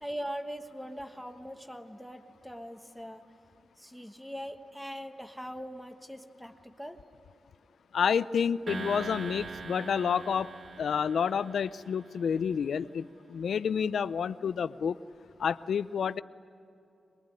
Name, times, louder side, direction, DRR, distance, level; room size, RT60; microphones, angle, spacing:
voice 1, 0.0-3.2 3.8-7.0, equal, ahead, 6 dB, 1.3 m, -41 dB
voice 2, 7.9-10.5 10.8-15.0 15.4-16.2, left 7 dB, 75° left, 15 dB, 0.6 m, -29 dB
sound 1, 8.7-12.1, right 5 dB, 40° right, 0.5 m, -42 dB
23.5 x 22.0 x 9.9 m, 2.8 s
wide cardioid pair, 160°, 0 cm